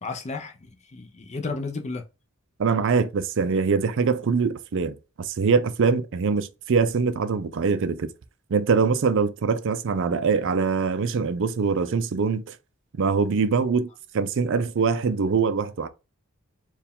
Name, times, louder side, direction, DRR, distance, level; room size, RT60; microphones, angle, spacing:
voice 1, 0.0-2.0, left 3 dB, 30° left, 0.6 m, -33 dB
voice 2, 2.6-8.1 8.5-12.6 13.0-13.9 14.1-15.9, right 5 dB, 55° right, 0.4 m, -23 dB
4.5 x 2.4 x 3.5 m
head